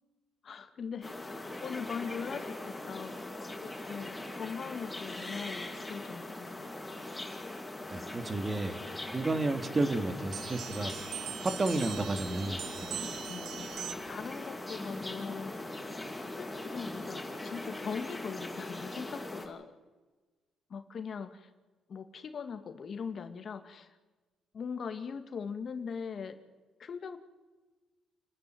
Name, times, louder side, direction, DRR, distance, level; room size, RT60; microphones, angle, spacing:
voice 1, 0.4-3.3 3.6-6.7 11.9-12.0 12.8-15.9 16.3-19.7 20.7-21.5 21.9-24.0 24.5-26.4 26.8-27.2, left 6 dB, 50° left, 8 dB, 2.1 m, -41 dB
sound 1, 1.0-19.5, left 2 dB, 10° left, 6.5 m, -41 dB
voice 2, 7.9-8.8 9.1-10.9 11.4-12.6, right 2 dB, 30° right, 9 dB, 2.1 m, -31 dB
sound 2, 10.3-14.2, right 11 dB, 80° right, 1.0 m, -42 dB
28.5 x 13.5 x 9.2 m, 1.2 s
cardioid pair, 90°, 0 cm